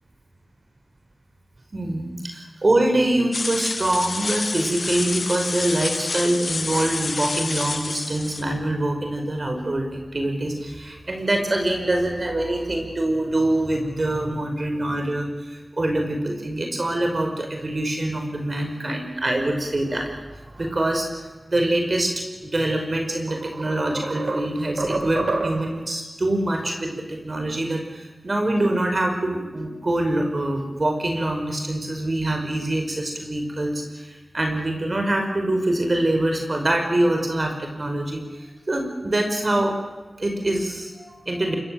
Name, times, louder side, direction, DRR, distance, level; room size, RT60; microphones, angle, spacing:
voice 1, 1.7-22.1 22.4-39.7 40.2-41.6, right 1 dB, 50° right, 3 dB, 5.3 m, -24 dB
sound 1, 3.3-8.4, left 3 dB, 65° left, 1.4 m, -28 dB
sound 2, 22.7-22.8 23.3-25.9, right 2 dB, 75° right, 3.2 m, -28 dB
25.5 x 22.0 x 7.8 m, 1.2 s
cardioid pair, 40°, 0 cm